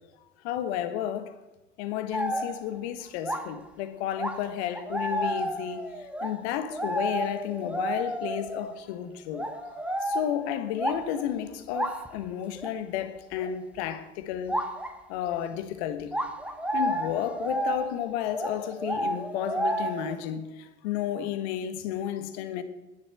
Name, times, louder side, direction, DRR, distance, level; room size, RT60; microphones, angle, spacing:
voice 1, 0.4-1.3 1.8-9.5 10.0-14.6 15.1-16.2 16.7-22.6, left 10 dB, 65° left, 1.4 m, -32 dB
sound 1, 2.1-2.7 3.2-3.6 4.2-8.8 9.3-11.3 11.7-12.1 12.6-12.7 13.4-13.5 14.5-14.9 16.1-20.2, right 1 dB, 5° right, 1.4 m, -31 dB
11.0 x 10.5 x 7.6 m
figure-of-eight pair, 65°, 36 cm